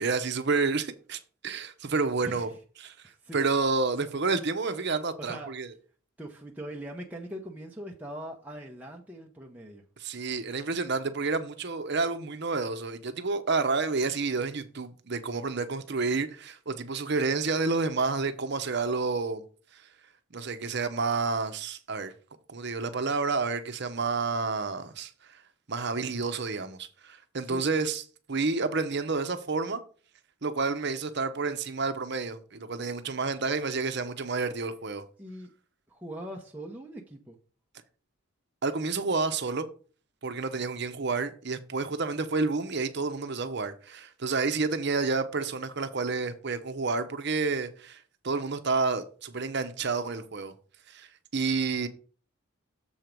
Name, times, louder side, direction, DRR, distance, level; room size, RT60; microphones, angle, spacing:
voice 1, 0.0-2.5 2.8-2.9 3.3-5.7 10.0-19.4 19.7-19.8 20.3-22.1 22.5-25.1 25.7-28.0 28.3-29.8 30.4-35.0 38.6-39.7 40.2-50.5 50.9-51.1 51.3-51.9, right 4 dB, 55° right, 0.8 m, -29 dB
voice 2, 2.2-2.6 3.0-3.5 5.2-5.5 6.2-9.8 27.4-27.7 35.2-35.5 35.9-37.4, right 1 dB, 10° right, 0.8 m, -41 dB
7.2 x 4.5 x 5.2 m
head